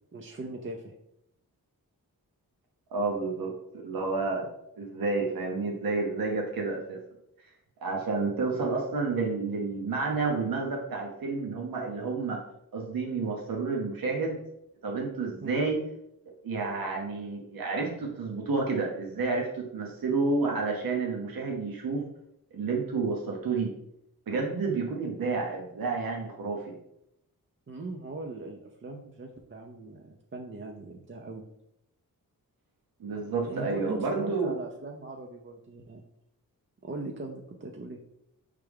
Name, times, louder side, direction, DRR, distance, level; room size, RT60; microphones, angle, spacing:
voice 1, 0.1-0.9 8.4-8.7 15.4-15.6 27.7-31.4 33.4-36.0 36.8-38.0, right 2 dB, 35° right, 1 dB, 0.6 m, -40 dB
voice 2, 2.9-4.5 4.8-7.0 7.8-12.4 12.7-14.4 14.8-15.8 16.4-22.0 22.5-23.7 24.3-26.7 33.0-34.5, right 3 dB, 70° right, 0 dB, 0.9 m, -30 dB
4.5 x 3.3 x 3.5 m, 0.78 s
cardioid pair, 70°, 36 cm